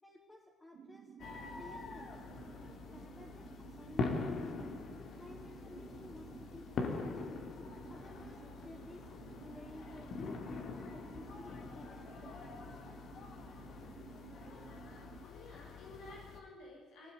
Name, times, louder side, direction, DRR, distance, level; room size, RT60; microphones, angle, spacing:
voice 1, 0.0-1.2 1.5-2.4 2.9-4.8 5.2-7.5 7.9-9.1 9.4-10.4 10.9-12.7, left 2 dB, 25° left, -3 dB, 3.9 m, -54 dB
sound 1, 0.7-15.2, right 8 dB, 70° right, 1.9 m, -54 dB
sound 2, 1.2-16.4, left 4 dB, 65° left, 3.4 m, -44 dB
voice 2, 15.2-17.1, left 2 dB, 90° left, -2 dB, 6.0 m, -53 dB
20.0 x 18.5 x 9.8 m, 1.2 s
cardioid pair, 90°, 0 cm